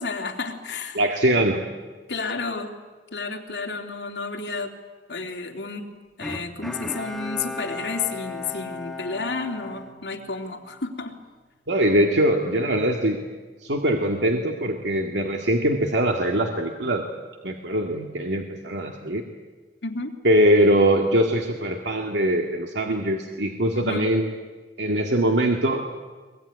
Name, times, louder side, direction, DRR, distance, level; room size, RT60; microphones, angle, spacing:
voice 1, 0.0-1.0 2.1-2.7 3.1-4.7 5.1-5.9 6.2-11.2 19.8-20.1 23.7-24.1, left 4 dB, 75° left, 2 dB, 3.1 m, -31 dB
voice 2, 0.9-1.6 11.7-13.2 13.6-17.0 17.4-19.2 20.2-24.3 24.8-25.8, right 1 dB, 90° right, 3 dB, 2.1 m, -22 dB
Bowed string instrument, 6.2-10.7 11.2-11.3, left 2 dB, ahead, 2.2 m, -36 dB
23.0 x 22.0 x 9.7 m, 1.3 s
head